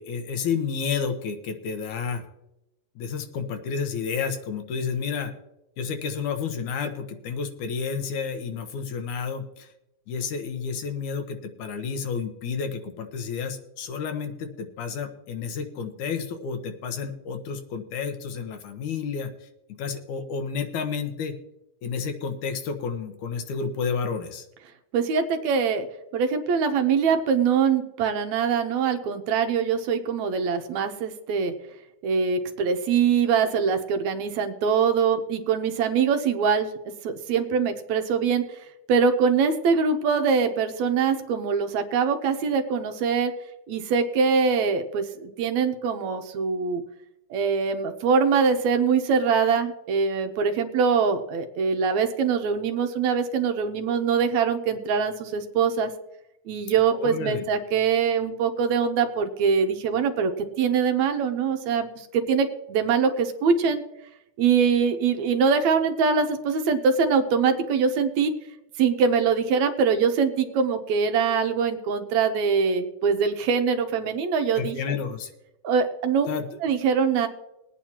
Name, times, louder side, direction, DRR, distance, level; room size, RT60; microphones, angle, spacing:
voice 1, 0.0-2.3 3.0-5.3 5.8-9.7 10.1-19.5 19.8-21.3 21.8-24.5 56.9-57.5 74.6-75.3 76.3-76.4, left 6 dB, 80° left, 6 dB, 2.6 m, -31 dB
voice 2, 24.9-25.9 26.1-31.5 32.0-36.7 37.0-38.4 38.9-43.3 43.7-46.8 47.3-55.9 56.5-60.3 60.6-63.8 64.4-68.3 68.8-75.0 75.6-76.3 76.6-77.3, right 6 dB, 75° right, 6 dB, 2.1 m, -23 dB
21.0 x 9.1 x 2.9 m, 0.90 s
omnidirectional pair, 3.4 m